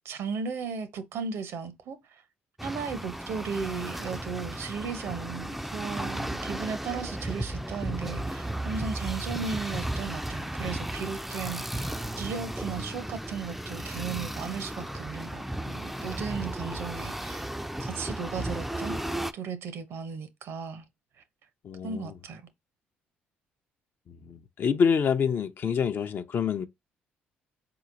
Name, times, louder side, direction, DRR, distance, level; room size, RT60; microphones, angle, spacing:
voice 1, 0.0-2.2 2.6-17.5 17.8-19.0 19.3-20.8 21.8-22.4, right 6 dB, 70° right, 0.7 m, -36 dB
sound 1, 2.6-19.3, right 1 dB, 5° right, 0.3 m, -34 dB
voice 2, 21.6-22.2 24.1-26.7, left 6 dB, 50° left, 0.5 m, -27 dB
4.2 x 2.8 x 2.6 m
supercardioid pair, 65°, 4 cm